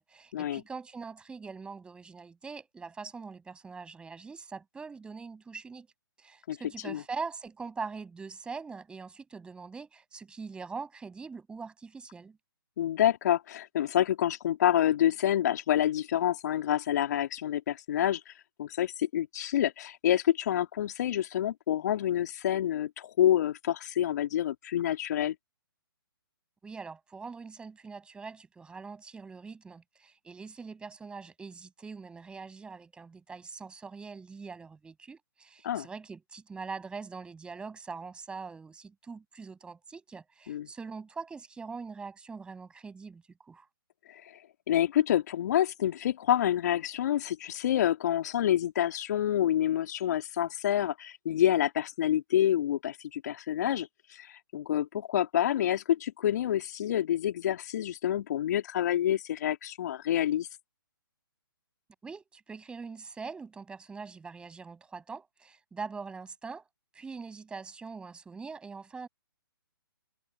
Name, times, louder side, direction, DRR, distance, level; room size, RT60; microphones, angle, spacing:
voice 1, 0.0-5.9 6.2-12.4 26.6-43.7 62.0-66.6 66.9-69.1, right 4 dB, 10° right, 7.9 m, -43 dB
voice 2, 12.8-18.3 18.6-25.3 35.6-35.9 40.5-40.7 44.1-44.3 44.7-60.5, left 11 dB, 45° left, 2.6 m, -28 dB
figure-of-eight pair, 135°, 12 cm